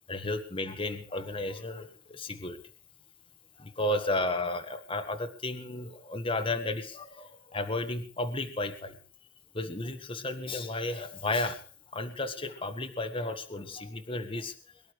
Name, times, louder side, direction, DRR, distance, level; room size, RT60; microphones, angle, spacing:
voice 1, 0.1-2.6 3.6-9.0 9.5-11.6 11.9-14.5, left 2 dB, 25° left, 7 dB, 1.7 m, -33 dB
23.5 x 11.5 x 4.8 m, 0.39 s
head